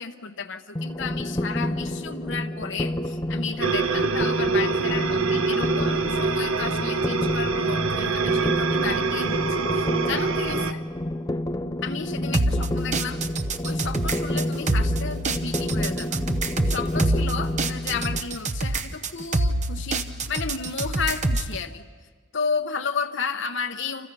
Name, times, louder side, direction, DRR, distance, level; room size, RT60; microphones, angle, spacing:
voice 1, 0.0-10.8 11.8-13.2 13.6-16.2 16.7-20.0 20.3-21.8 22.3-24.1, left 5 dB, 60° left, 6 dB, 0.9 m, -32 dB
sound 1, 0.7-18.2, left 1 dB, 15° left, 0.7 m, -29 dB
sound 2, 3.6-10.7, right 4 dB, 75° right, 1.0 m, -25 dB
sound 3, 12.3-21.6, right 2 dB, 35° right, 0.8 m, -26 dB
29.0 x 27.0 x 5.5 m, 1.5 s
head